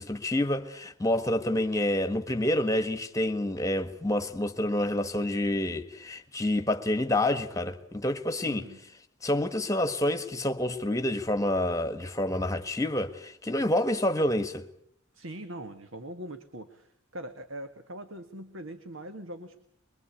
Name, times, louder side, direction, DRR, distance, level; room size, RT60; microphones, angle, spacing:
voice 1, 0.0-8.6 9.2-14.6, left 1 dB, 15° left, 1.5 m, -28 dB
voice 2, 8.4-8.8 15.1-19.6, right 1 dB, 65° right, 1.7 m, -42 dB
24.5 x 22.5 x 8.4 m
head